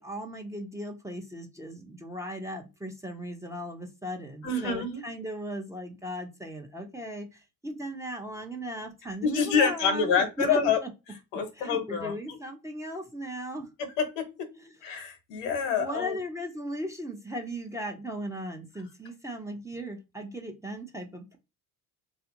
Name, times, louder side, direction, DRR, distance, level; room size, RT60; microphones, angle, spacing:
voice 1, 0.0-10.9 11.6-13.7 14.6-14.7 15.8-21.4, equal, 5° right, 2 dB, 0.7 m, -37 dB
voice 2, 4.4-5.0 9.2-10.8 11.3-12.4 14.0-14.2 14.8-16.2, left 6 dB, 80° left, 8 dB, 1.0 m, -27 dB
3.2 x 2.4 x 2.9 m, 0.27 s
hypercardioid pair, 65°, 47 cm